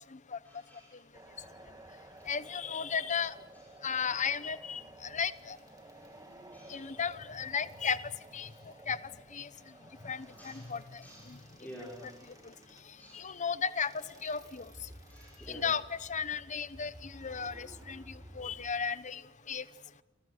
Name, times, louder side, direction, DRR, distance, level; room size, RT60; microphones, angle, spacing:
voice 1, 0.4-1.0 2.2-2.3 3.5-3.6 6.0-6.1 6.5-6.9 8.4-8.6 9.5-9.8 10.3-10.7 11.0-12.3 12.9-13.4 15.1-15.7, equal, 10° left, -4 dB, 5.9 m, -51 dB
sound 1, 1.1-18.7, right 1 dB, 15° right, 2.3 m, -54 dB
voice 2, 2.3-3.3 3.8-5.6 6.7-8.0 8.3-8.5 8.9-9.0 9.3-9.5 10.0-11.4 11.8-12.1 12.4-12.5 13.1-14.7 15.5-19.2 19.5-19.6, left 6 dB, 35° left, 15 dB, 0.9 m, -35 dB
29.0 x 26.5 x 6.5 m, 1.0 s
head